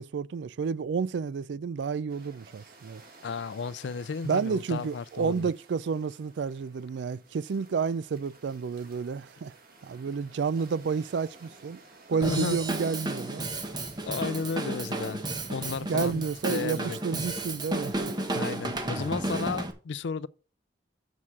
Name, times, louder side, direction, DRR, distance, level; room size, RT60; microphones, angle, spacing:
voice 1, 0.0-3.0 4.2-9.5 9.8-11.8 12.1-13.5 15.9-18.1, right 5 dB, 80° right, 0.4 m, -30 dB
sound 1, 2.1-17.3, right 3 dB, 55° right, 2.1 m, -55 dB
voice 2, 3.2-5.5 12.1-12.6 14.1-15.2 15.5-17.0 18.3-20.3, left 5 dB, 85° left, 0.4 m, -33 dB
Drum kit / Drum, 12.2-19.7, right 2 dB, 25° right, 1.1 m, -33 dB
7.1 x 6.5 x 6.0 m
head